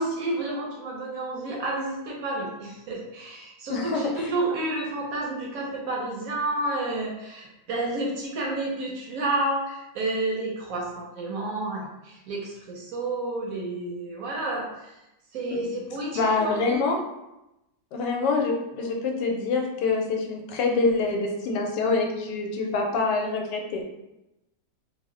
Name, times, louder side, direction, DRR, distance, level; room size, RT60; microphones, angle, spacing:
voice 1, 0.0-15.0 15.3-16.8, right 2 dB, 70° right, -2 dB, 0.9 m, -30 dB
voice 2, 3.7-4.3 15.5-15.6 16.1-17.0 17.9-23.8, left 3 dB, 85° left, 2 dB, 1.2 m, -25 dB
3.0 x 2.0 x 3.6 m, 0.93 s
omnidirectional pair, 1.8 m